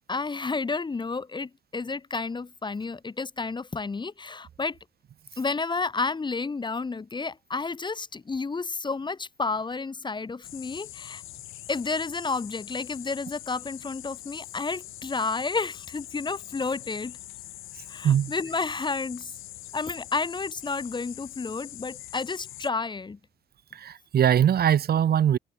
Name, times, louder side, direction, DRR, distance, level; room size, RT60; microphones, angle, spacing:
voice 1, 0.0-4.8 5.4-11.2 11.7-17.2 17.9-19.3 19.7-23.2, left 4 dB, 25° left, 0.8 m, -31 dB
sound 1, 10.4-22.7, left 16 dB, 90° left, 3.3 m, -43 dB
voice 2, 23.7-25.4, right 9 dB, 50° right, 0.9 m, -21 dB
cardioid pair, 90°, 20 cm